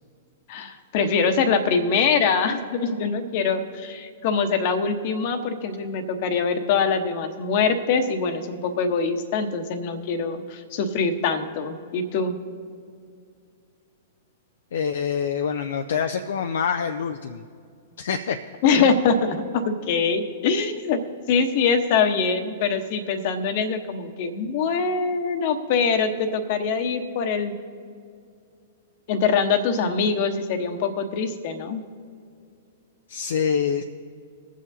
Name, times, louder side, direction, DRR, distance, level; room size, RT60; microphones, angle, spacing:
voice 1, 0.5-12.4 18.6-21.0 21.3-27.5 29.1-31.8, left 5 dB, 50° left, 8 dB, 1.0 m, -23 dB
voice 2, 14.7-17.4 18.0-18.4 33.1-33.8, left 7 dB, 65° left, 7 dB, 0.4 m, -25 dB
22.5 x 7.6 x 2.7 m, 2.3 s
figure-of-eight pair, 110°, 0 cm